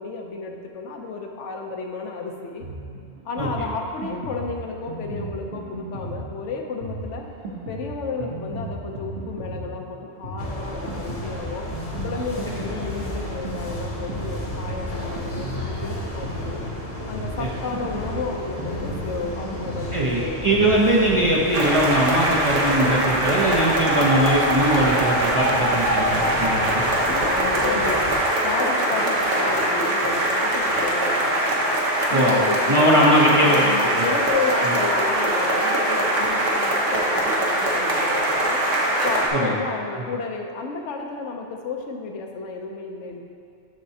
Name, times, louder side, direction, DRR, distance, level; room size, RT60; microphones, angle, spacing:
voice 1, 0.0-2.6 3.2-7.3 7.7-11.7 12.0-16.7 17.1-20.7 24.6-25.6 26.1-26.4 27.0-31.7 32.1-33.1 33.4-38.7 39.0-43.2, left 4 dB, 80° left, 2 dB, 1.0 m, -32 dB
Drum kit, 2.6-20.8, right 2 dB, 60° right, 1.3 m, -35 dB
sound 1, 10.4-28.2, left 1 dB, 35° left, 0.9 m, -34 dB
voice 2, 19.9-26.8 32.1-32.4 32.7-33.6 34.6-34.7 39.3-39.5, right 1 dB, 35° right, -4 dB, 0.6 m, -20 dB
sound 2, 21.5-39.3, right 1 dB, 80° right, 1.3 m, -22 dB
12.5 x 4.3 x 2.7 m, 2.4 s
omnidirectional pair, 1.2 m